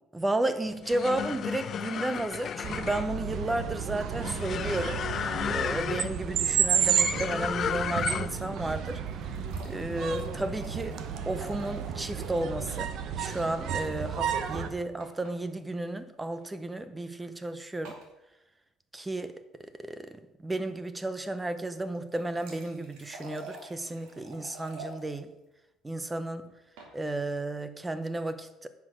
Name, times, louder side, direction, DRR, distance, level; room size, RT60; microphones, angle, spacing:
voice 1, 0.1-5.0 5.4-11.0 11.3-18.0 18.9-25.3 25.8-26.5 26.9-28.7, right 2 dB, 10° right, 11 dB, 0.7 m, -33 dB
sound 1, 0.7-8.5, left 8 dB, 35° left, 0.3 m, -34 dB
sound 2, 2.6-14.7, right 8 dB, 50° right, 0.8 m, -32 dB
sound 3, 8.8-12.6 12.8-12.9 13.2-13.3 15.0-15.4 16.3-16.5 17.8-18.1 21.9-25.0 26.5-26.9, right 2 dB, 85° right, 2.5 m, -48 dB
9.5 x 6.0 x 6.3 m, 0.93 s
cardioid pair, 155°, 0 cm